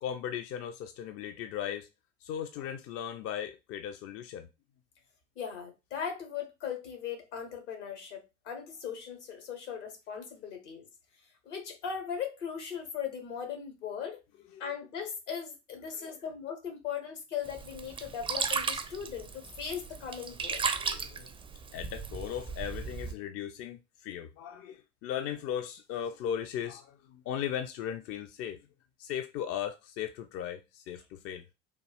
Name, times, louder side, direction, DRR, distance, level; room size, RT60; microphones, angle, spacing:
voice 1, 0.0-1.9 2.2-4.5 16.0-16.2 20.7-21.3 21.7-28.6 29.0-31.4, left 9 dB, 40° left, 0.4 m, -37 dB
voice 2, 5.3-10.9 11.4-14.2 14.6-20.6, left 7 dB, 75° left, 1.3 m, -38 dB
Sink (filling or washing), 17.4-23.1, right 5 dB, 15° right, 0.4 m, -36 dB
3.5 x 2.3 x 3.3 m
figure-of-eight pair, 65°, 36 cm